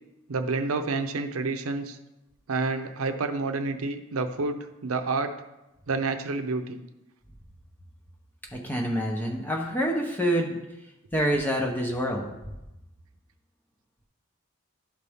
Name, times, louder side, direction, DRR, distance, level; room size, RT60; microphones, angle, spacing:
voice 1, 0.3-2.0 2.5-5.3 5.9-6.8, right 3 dB, 90° right, 7 dB, 0.6 m, -29 dB
voice 2, 8.5-10.6 11.1-12.4, equal, 10° left, 0 dB, 0.8 m, -27 dB
11.5 x 4.1 x 3.5 m, 0.95 s
head